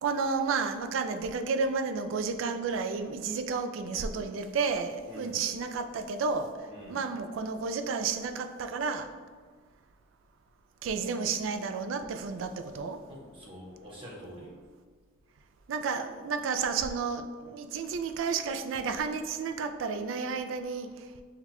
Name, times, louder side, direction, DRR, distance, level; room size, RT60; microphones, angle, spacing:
voice 1, 0.0-6.5 6.9-9.1 10.8-13.0 15.7-20.9, right 5 dB, 80° right, 8 dB, 0.3 m, -31 dB
voice 2, 5.1-5.4 6.7-7.0 13.1-14.5, equal, 25° right, -4 dB, 0.8 m, -46 dB
5.8 x 2.2 x 2.9 m, 1.5 s
head